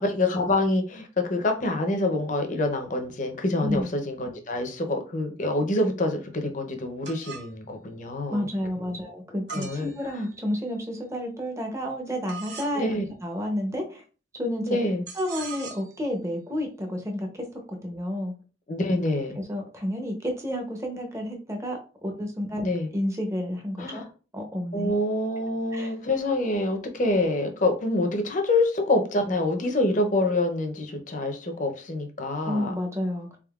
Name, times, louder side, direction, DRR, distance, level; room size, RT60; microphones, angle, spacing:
voice 1, 0.0-8.5 8.8-9.0 9.5-9.9 12.7-13.1 14.7-15.0 18.7-19.4 22.6-22.9 23.8-24.1 24.7-32.7, left 2 dB, 45° left, 5 dB, 0.6 m, -26 dB
sound 1, 7.1-7.5 9.5-10.5 12.3-12.8 15.1-16.0, right 5 dB, 65° right, 0.7 m, -40 dB
voice 2, 8.3-14.0 14.4-14.8 15.1-18.3 19.4-22.7 22.9-24.0 24.3-24.9 25.7-25.9 32.5-33.4, left 1 dB, 15° right, 2 dB, 0.7 m, -30 dB
3.6 x 3.5 x 2.3 m, 0.36 s
head